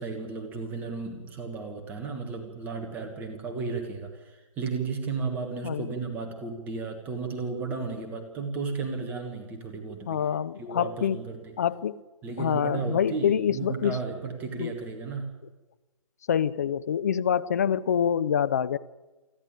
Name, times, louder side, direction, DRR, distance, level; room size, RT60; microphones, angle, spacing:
voice 1, 0.0-10.2 10.6-11.6 12.2-15.3, right 4 dB, 10° right, 1.4 m, -34 dB
voice 2, 10.1-11.2 11.6-12.0 12.4-14.0 14.6-14.7 16.3-18.8, left 8 dB, 30° left, 0.6 m, -26 dB
27.5 x 11.0 x 9.0 m
figure-of-eight pair, 150°, 18 cm